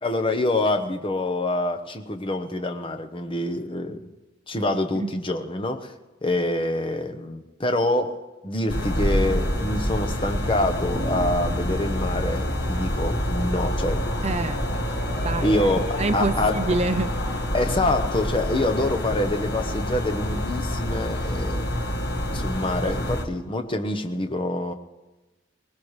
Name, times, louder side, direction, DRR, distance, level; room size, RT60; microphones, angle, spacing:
voice 1, 0.0-4.1 4.5-5.9 6.2-14.0 15.4-16.6 17.5-21.7 22.3-24.7, left 1 dB, 25° left, 6 dB, 0.9 m, -26 dB
sound 1, 8.7-23.3, left 1 dB, 55° left, 1.5 m, -27 dB
sound 2, 10.9-17.2, equal, 55° right, 1.8 m, -33 dB
voice 2, 14.2-14.6 15.2-17.5, right 2 dB, 30° right, 8 dB, 0.5 m, -27 dB
Shout, 14.5-19.6, left 2 dB, 75° left, 3.6 m, -43 dB
23.5 x 19.5 x 3.2 m, 1.1 s
head